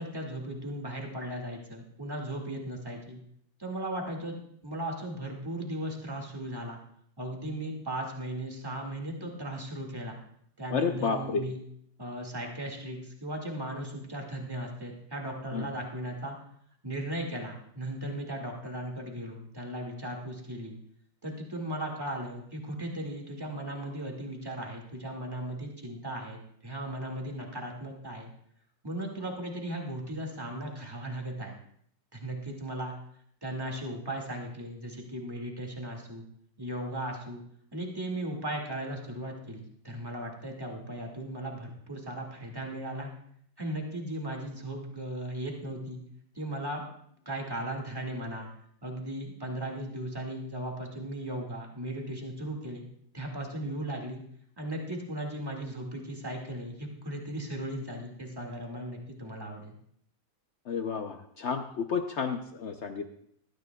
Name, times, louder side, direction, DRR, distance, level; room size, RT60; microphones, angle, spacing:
voice 1, 0.0-3.2 3.6-4.3 4.6-6.8 7.2-10.2 10.6-11.6 12.0-16.4 16.8-20.8 21.2-28.3 28.8-31.6 32.1-32.9 33.4-36.3 36.6-37.4 37.7-43.1 43.6-46.0 46.3-46.8 47.3-48.5 48.8-52.9 53.1-54.2 54.6-59.7, right 1 dB, 10° right, 0 dB, 1.9 m, -37 dB
voice 2, 10.7-11.4 15.5-15.7 60.7-63.1, left 5 dB, 80° left, 6 dB, 0.6 m, -31 dB
19.5 x 13.0 x 2.3 m, 0.67 s
omnidirectional pair, 2.1 m